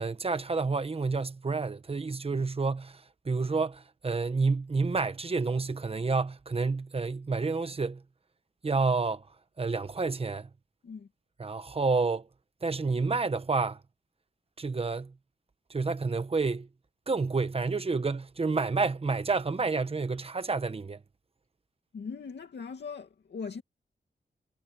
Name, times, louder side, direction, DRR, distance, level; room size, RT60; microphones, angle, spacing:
voice 1, 0.0-8.0 8.6-9.3 9.6-10.5 11.4-12.3 12.6-13.8 14.6-15.1 15.7-16.7 17.1-21.0, right 4 dB, 35° right, 1.1 m, -29 dB
voice 2, 21.9-23.6, left 5 dB, 75° left, 2.4 m, -40 dB
wide cardioid pair, 145°, 18 cm